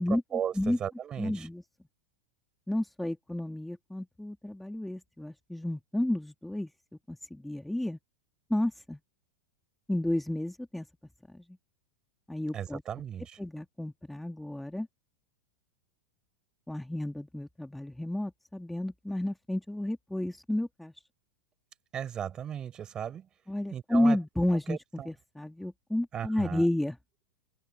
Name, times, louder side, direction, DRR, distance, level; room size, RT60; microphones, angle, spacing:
voice 1, 0.0-1.5 12.5-13.4 21.9-23.3 23.7-24.2 24.7-25.1 26.1-26.7, right 9 dB, 30° right, 5.2 m, -36 dB
voice 2, 1.2-1.6 2.7-6.7 7.1-8.0 8.5-9.0 9.9-10.9 11.3-11.4 12.3-12.8 13.4-14.9 16.7-20.9 23.5-24.8 25.1-27.0, left 1 dB, 5° left, 2.1 m, -31 dB
open air
hypercardioid pair, 100°, 3 cm